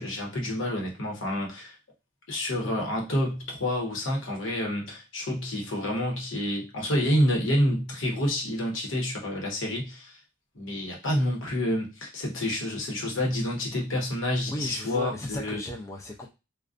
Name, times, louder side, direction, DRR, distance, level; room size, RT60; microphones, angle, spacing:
voice 1, 0.0-1.8 2.3-10.2 10.5-15.6, left 1 dB, 85° left, 0.9 m, -28 dB
voice 2, 14.5-16.3, left 1 dB, 15° left, 0.3 m, -35 dB
2.4 x 2.2 x 2.4 m
head